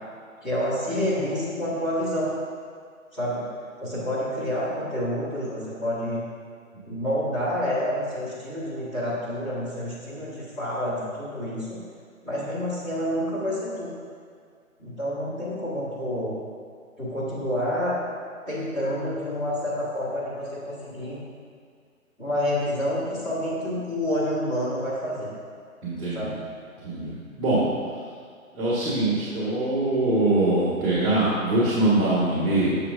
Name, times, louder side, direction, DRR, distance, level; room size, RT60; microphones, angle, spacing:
voice 1, 0.4-2.3 3.1-3.4 3.8-6.2 6.8-11.8 12.2-13.9 14.8-16.3 17.0-17.9 18.5-21.2 22.2-25.3 26.1-26.4, equal, 10° left, -11 dB, 1.6 m, -28 dB
voice 2, 25.8-26.3 26.8-27.6 28.5-32.8, right 2 dB, 20° right, -8 dB, 1.4 m, -23 dB
9.1 x 6.6 x 2.5 m, 2.1 s
hypercardioid pair, 155°, 42 cm